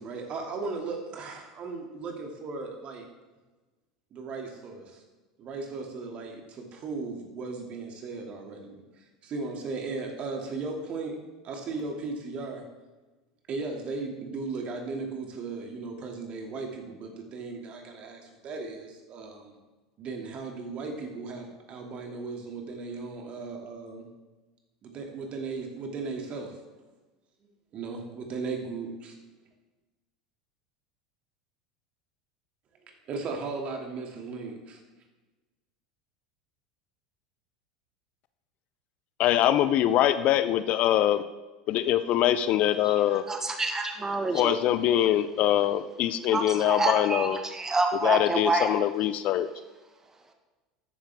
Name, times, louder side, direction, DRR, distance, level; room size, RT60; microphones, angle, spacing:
voice 1, 0.0-3.1 4.1-5.0 5.4-11.2 11.4-12.6 13.5-19.6 20.0-24.1 24.8-26.6 27.7-29.2 33.1-34.8, right 4 dB, 40° right, 2 dB, 2.7 m, -36 dB
voice 2, 39.2-41.2 41.7-43.2 44.3-47.4 48.0-49.5, left 12 dB, 50° left, 13 dB, 0.6 m, -23 dB
voice 3, 43.3-44.6 46.3-48.7, right 2 dB, 15° right, 5 dB, 1.5 m, -27 dB
13.0 x 10.0 x 3.6 m, 1.2 s
hypercardioid pair, 75°, 3 cm